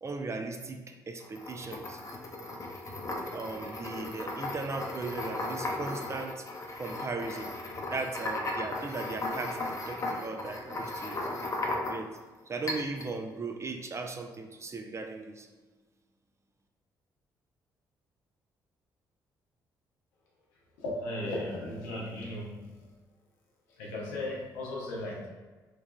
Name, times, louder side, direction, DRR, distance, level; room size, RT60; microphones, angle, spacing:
voice 1, 0.0-2.0 3.3-6.5 6.8-7.5 7.9-11.2 11.8-12.1 12.5-15.5, right 3 dB, 30° right, 5 dB, 0.4 m, -37 dB
sound 1, 1.2-12.2 12.7-13.1, left 2 dB, 35° left, 0.5 m, -36 dB
voice 2, 20.8-22.7 23.8-25.3, left 1 dB, 90° left, -3 dB, 0.6 m, -36 dB
3.2 x 2.3 x 2.2 m, 1.3 s
hypercardioid pair, 50°, 9 cm